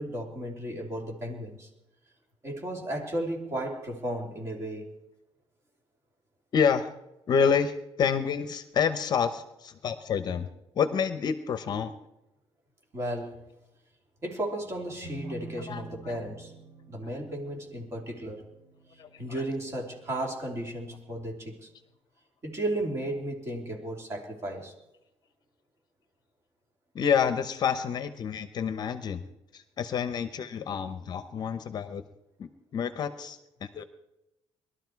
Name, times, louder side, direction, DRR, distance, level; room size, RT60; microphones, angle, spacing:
voice 1, 0.0-1.7 2.4-4.9 12.9-13.4 14.2-16.5 16.9-18.4 19.2-21.7 22.4-24.7, right 1 dB, 25° right, 0 dB, 3.1 m, -34 dB
voice 2, 6.5-6.9 7.3-10.5 10.8-11.9 15.7-16.2 19.0-19.1 19.3-19.4 26.9-29.2 29.5-32.0 32.4-33.8, left 7 dB, 40° left, 10 dB, 0.9 m, -28 dB
sound 1, 15.0-20.6, right 2 dB, 45° right, 3.4 m, -48 dB
21.5 x 12.5 x 4.7 m, 0.92 s
cardioid pair, 170°, 10 cm